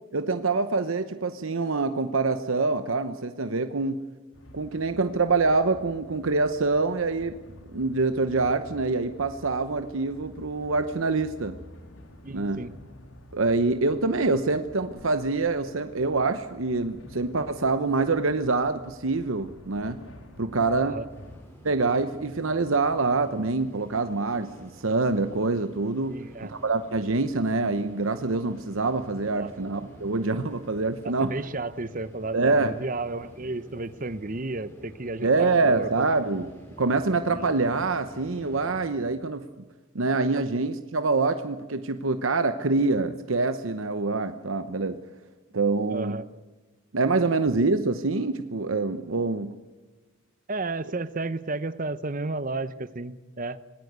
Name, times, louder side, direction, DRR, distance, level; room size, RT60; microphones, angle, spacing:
voice 1, 0.1-4.0 4.5-7.3 7.7-11.6 12.3-12.6 13.3-20.0 20.4-21.0 21.6-26.2 26.4-31.3 32.3-32.7 35.2-36.5 36.8-39.5 39.9-45.0 45.5-46.2 46.9-49.5, right 3 dB, 75° right, 9 dB, 0.9 m, -25 dB
sound 1, 4.3-21.4, equal, 80° left, 3.4 m, -49 dB
voice 2, 12.2-12.7 20.8-21.1 26.1-26.5 29.3-29.5 31.0-36.1 37.3-37.4 45.9-46.3 50.5-53.6, right 2 dB, 40° right, 14 dB, 0.9 m, -33 dB
sound 2, 21.1-38.9, equal, 10° left, 6.5 m, -49 dB
26.0 x 19.5 x 8.1 m, 1.2 s
head